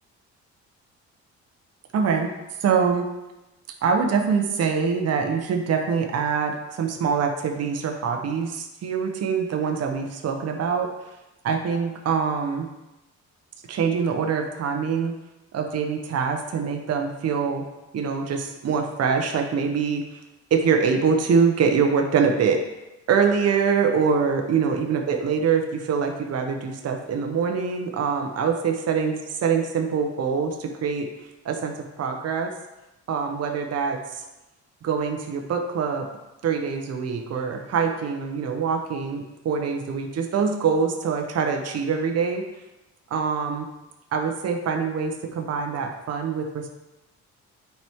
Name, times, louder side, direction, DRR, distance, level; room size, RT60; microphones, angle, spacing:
voice 1, 1.9-2.3 2.6-3.1 3.8-10.9 11.4-12.7 13.7-15.1 15.5-17.6 17.9-20.2 20.5-22.6 23.1-31.1 31.4-32.5 33.1-34.2 34.8-36.1 36.4-42.4 43.1-43.7 44.1-46.7, right 6 dB, 55° right, 3 dB, 0.9 m, -24 dB
9.0 x 4.5 x 3.5 m, 1.0 s
cardioid pair, 90°, 30 cm